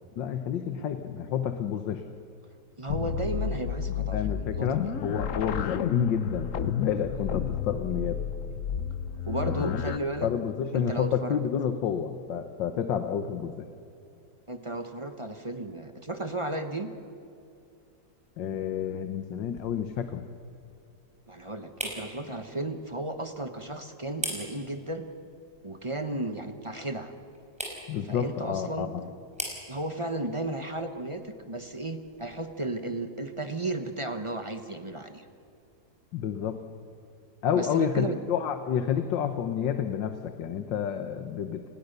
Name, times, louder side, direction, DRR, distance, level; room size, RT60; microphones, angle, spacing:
voice 1, 0.2-2.0 4.1-8.3 9.5-9.8 10.2-13.7 18.4-20.3 27.9-29.1 36.1-36.6 37.4-41.6, left 8 dB, 75° left, 8 dB, 1.7 m, -30 dB
voice 2, 2.8-4.9 9.3-10.3 10.7-11.4 14.5-16.9 21.3-25.0 25.6-27.1 28.0-28.9 29.7-35.3 37.5-38.2, right 2 dB, 20° right, 8 dB, 1.0 m, -34 dB
sound 1, 2.9-10.0, left 8 dB, 55° left, 1.0 m, -31 dB
sound 2, 18.2-33.0, equal, 5° right, 5.1 m, -44 dB
29.5 x 20.5 x 6.8 m, 2.5 s
omnidirectional pair, 2.1 m